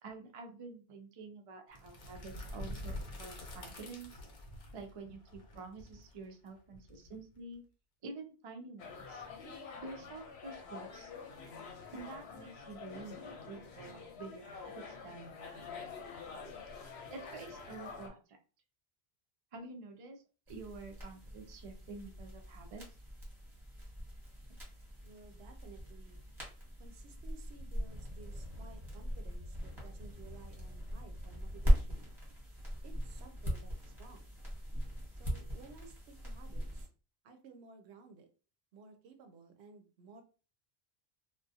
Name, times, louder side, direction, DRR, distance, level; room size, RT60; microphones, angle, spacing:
voice 1, 0.0-4.2 4.7-7.6 8.0-9.2 9.8-11.1 11.9-15.6 17.1-18.2 19.5-20.2 20.5-22.8, right 3 dB, 50° right, 4 dB, 0.4 m, -48 dB
sound 1, 1.7-7.5, left 1 dB, 55° left, 0.8 m, -46 dB
sound 2, 8.8-18.1, left 5 dB, 85° left, 0.8 m, -47 dB
sound 3, 20.5-36.9, equal, 25° right, 1.0 m, -39 dB
voice 2, 25.0-26.2 26.8-32.1 32.8-34.3 35.1-36.9 37.2-38.3 38.7-40.2, right 5 dB, 85° right, 5 dB, 0.8 m, -56 dB
2.3 x 2.1 x 2.6 m, 0.36 s
omnidirectional pair, 1.1 m